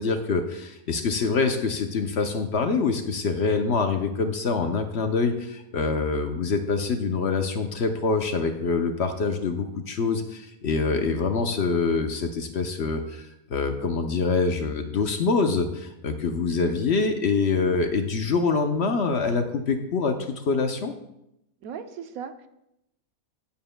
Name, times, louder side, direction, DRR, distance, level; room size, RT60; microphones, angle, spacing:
voice 1, 0.0-20.9, left 4 dB, 55° left, 6 dB, 0.8 m, -25 dB
voice 2, 21.6-22.5, right 7 dB, 75° right, 9 dB, 1.1 m, -37 dB
16.0 x 7.3 x 2.2 m, 0.83 s
omnidirectional pair, 1.5 m